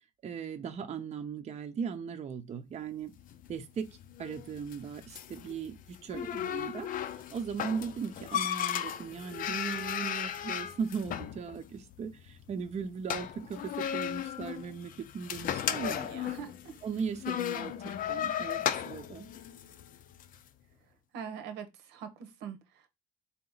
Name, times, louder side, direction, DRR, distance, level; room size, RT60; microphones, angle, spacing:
voice 1, 0.2-3.1 3.5-3.9 4.2-16.1 16.8-17.7 18.1-19.3, right 6 dB, 40° right, 0.7 m, -38 dB
sound 1, 3.1-20.4, left 10 dB, 55° left, 0.6 m, -36 dB
voice 2, 6.1-6.5 15.9-16.8 21.1-22.9, right 7 dB, 85° right, 1.0 m, -43 dB
4.2 x 2.8 x 4.0 m
cardioid pair, 110°, 17 cm